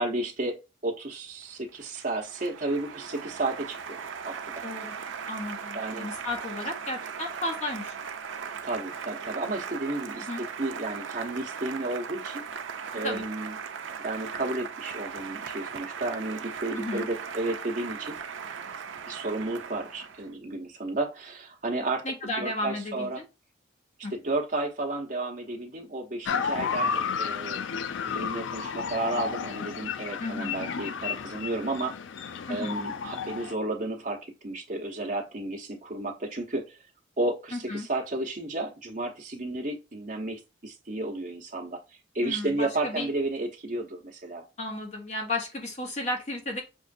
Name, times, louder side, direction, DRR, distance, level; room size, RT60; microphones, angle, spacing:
voice 1, 0.0-4.0 4.2-4.7 5.7-6.1 8.6-10.3 10.6-12.4 12.9-13.5 14.0-18.2 19.1-22.1 22.4-23.2 24.1-27.6 28.1-32.0 32.5-36.8 37.2-41.8 42.1-44.4, right 2 dB, 45° right, 1.0 m, -32 dB
Applause, 1.4-20.3, right 6 dB, 75° right, 0.5 m, -38 dB
voice 2, 4.6-5.0 5.3-8.0 10.3-10.4 13.0-13.2 16.7-17.1 22.0-23.2 24.0-24.1 30.2-30.5 32.5-32.8 37.5-37.9 42.2-43.1 44.6-46.6, left 2 dB, 35° left, 0.8 m, -33 dB
sound 1, 26.3-33.5, left 6 dB, 70° left, 0.4 m, -32 dB
6.2 x 2.5 x 2.5 m
head